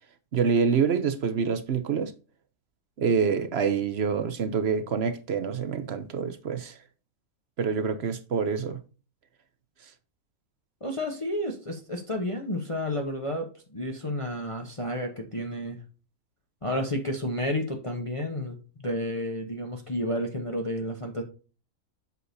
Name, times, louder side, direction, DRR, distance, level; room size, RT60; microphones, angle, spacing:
voice 1, 0.3-2.1 3.0-6.8 7.6-8.8, right 6 dB, 55° right, 0.8 m, -26 dB
voice 2, 10.8-15.8 16.6-21.2, left 1 dB, 25° left, 0.9 m, -31 dB
8.2 x 6.5 x 2.7 m
omnidirectional pair, 1.6 m